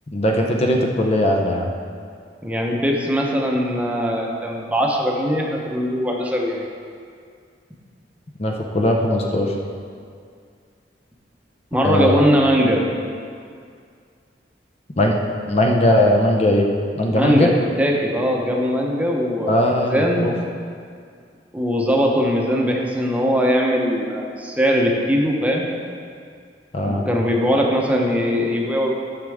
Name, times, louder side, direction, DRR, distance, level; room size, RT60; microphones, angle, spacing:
voice 1, 0.1-1.7 8.4-9.5 11.8-12.2 15.0-15.2 15.5-16.7 17.0-17.5 19.5-20.3 26.7-27.0, left 1 dB, 35° left, 1 dB, 0.7 m, -19 dB
voice 2, 2.4-6.7 11.7-12.8 17.1-17.5 17.8-19.6 19.9-20.4 21.5-25.7 26.8-28.9, equal, 10° right, -1 dB, 0.9 m, -20 dB
11.0 x 6.5 x 3.6 m, 2.2 s
head